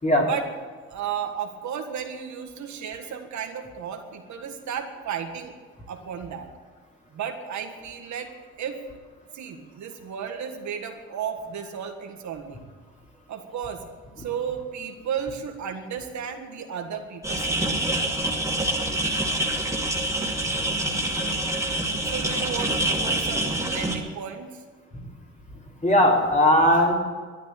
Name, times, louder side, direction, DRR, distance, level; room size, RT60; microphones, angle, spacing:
voice 1, 0.9-5.5 5.9-6.5 7.1-8.3 8.6-8.8 9.3-12.6 13.3-13.8 14.2-17.8 22.1-24.6, right 7 dB, 70° right, 4 dB, 1.8 m, -34 dB
sound 1, 17.2-24.0, right 1 dB, 10° right, 2.6 m, -26 dB
voice 2, 25.8-26.9, left 1 dB, 25° left, -1 dB, 3.7 m, -18 dB
12.5 x 10.5 x 8.7 m, 1.5 s
cardioid pair, 90°, 30 cm